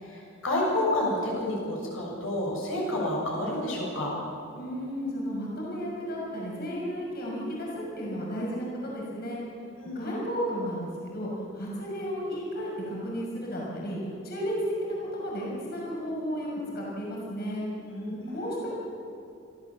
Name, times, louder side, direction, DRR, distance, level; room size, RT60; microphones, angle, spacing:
voice 1, 0.0-4.2 9.8-10.2 17.9-18.5, left 1 dB, 90° left, -3 dB, 7.4 m, -30 dB
voice 2, 4.6-9.4 9.9-11.3 11.5-14.0 14.2-14.5 14.8-16.5 16.7-17.7 18.3-18.8, equal, 50° left, -4 dB, 6.4 m, -33 dB
29.0 x 14.0 x 7.6 m, 2.7 s
head